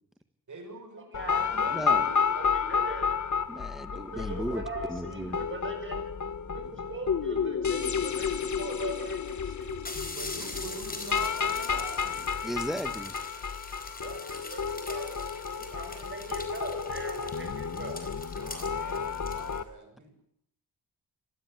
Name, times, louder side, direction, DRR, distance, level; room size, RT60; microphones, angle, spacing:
voice 1, 0.5-1.1 4.2-4.6 10.1-12.3 18.3-20.1, right 3 dB, 50° right, 5 dB, 6.5 m, -44 dB
sound 1, 1.1-19.6, left 6 dB, 45° left, 1.1 m, -31 dB
voice 2, 1.1-3.2 3.9-6.0 6.5-9.8 14.0-18.0, right 2 dB, 30° right, 3 dB, 6.8 m, -41 dB
voice 3, 1.7-2.0 3.5-4.6 4.9-5.4 12.4-13.1, equal, ahead, 12 dB, 1.5 m, -35 dB
sound 2, 8.5-8.6 9.3-9.4 9.6-19.6, left 2 dB, 20° left, 4.2 m, -43 dB
25.5 x 18.5 x 8.1 m, 0.69 s
wide cardioid pair, 135°, 39 cm